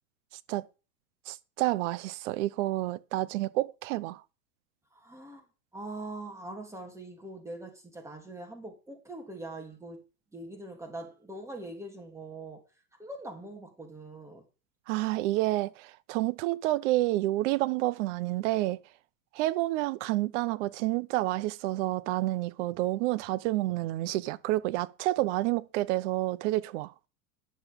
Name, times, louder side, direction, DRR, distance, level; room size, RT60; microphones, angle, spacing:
voice 1, 1.3-4.2 14.9-18.8 19.3-26.9, right 17 dB, 55° right, 0.8 m, -29 dB
voice 2, 4.9-5.5 5.7-10.0 10.3-12.6 13.0-14.5, right 2 dB, 5° right, 3.2 m, -42 dB
10.5 x 7.2 x 5.3 m
supercardioid pair, 130°, 44 cm